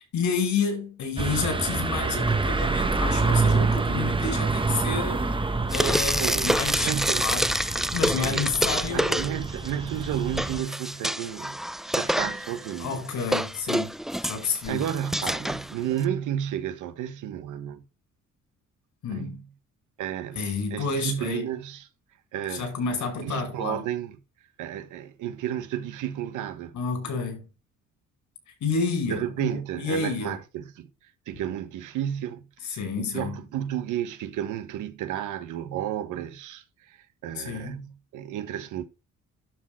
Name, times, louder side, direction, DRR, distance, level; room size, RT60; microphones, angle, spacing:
voice 1, 0.1-5.2 5.7-6.9 7.2-7.5 7.9-9.2 12.8-13.9 14.3-14.8 19.0-19.4 20.3-21.5 22.5-23.8 26.7-27.5 28.5-30.4 32.6-33.4 37.3-37.8, left 4 dB, 70° left, 6.5 m, -29 dB
sound 1, 1.2-10.6, right 3 dB, 15° right, 1.0 m, -27 dB
Frying (food), 5.7-9.7 10.0-16.0, equal, ahead, 0.4 m, -27 dB
voice 2, 6.2-6.5 6.8-7.3 7.8-8.5 8.9-11.6 11.9-13.1 14.7-17.8 19.1-19.4 20.0-20.4 20.7-21.9 22.3-22.7 23.2-24.2 24.6-26.7 29.0-30.9 31.3-37.0 37.2-38.8, right 10 dB, 85° right, 1.3 m, -32 dB
12.0 x 4.3 x 4.5 m
cardioid pair, 90°, 30 cm